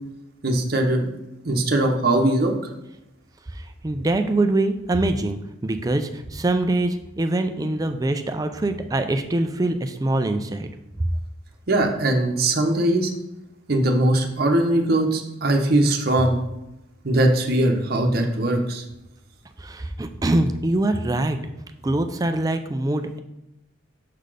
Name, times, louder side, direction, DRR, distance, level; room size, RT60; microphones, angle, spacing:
voice 1, 0.4-1.1 1.4-2.5 11.7-13.1 13.7-16.4 17.0-18.8, right 1 dB, 50° right, 2 dB, 0.9 m, -20 dB
voice 2, 3.5-10.7 11.0-11.1 19.6-21.4 21.8-23.2, right 2 dB, 20° right, 8 dB, 0.3 m, -24 dB
6.5 x 4.0 x 4.9 m, 0.91 s
head